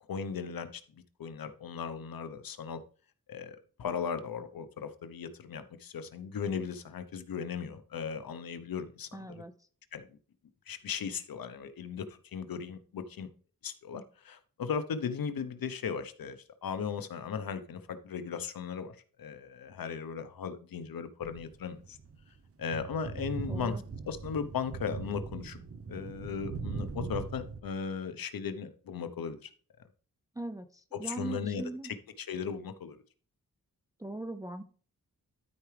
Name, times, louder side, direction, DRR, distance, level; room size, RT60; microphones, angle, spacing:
voice 1, 0.1-0.8 1.2-2.8 3.3-9.3 9.9-10.0 10.7-13.3 13.6-16.4 16.6-22.0 22.6-23.7 24.0-25.6 25.9-29.5 30.9-33.0, left 6 dB, 85° left, 10 dB, 0.9 m, -37 dB
voice 2, 9.1-9.5 23.5-23.8 30.4-31.9 34.0-34.6, right 2 dB, 10° right, 7 dB, 0.5 m, -40 dB
sound 1, 21.2-22.4 22.7-27.6, right 5 dB, 40° right, 0.7 m, -40 dB
12.5 x 4.8 x 3.3 m, 0.41 s
wide cardioid pair, 155°, 34 cm